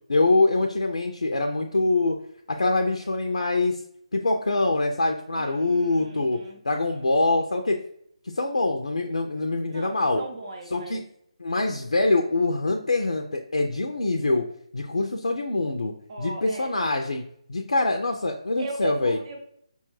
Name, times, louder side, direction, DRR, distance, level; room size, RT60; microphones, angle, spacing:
voice 1, 0.1-2.2 2.5-3.8 4.1-6.4 6.6-7.8 8.3-10.2 10.7-11.0 11.4-14.5 14.7-17.2 17.5-19.2, left 2 dB, 75° left, 3 dB, 0.4 m, -24 dB
voice 2, 5.3-7.0 9.7-11.0 16.1-16.7 18.6-19.4, right 2 dB, 50° right, 1 dB, 0.6 m, -38 dB
5.5 x 2.3 x 3.0 m, 0.69 s
figure-of-eight pair, 145°, 4 cm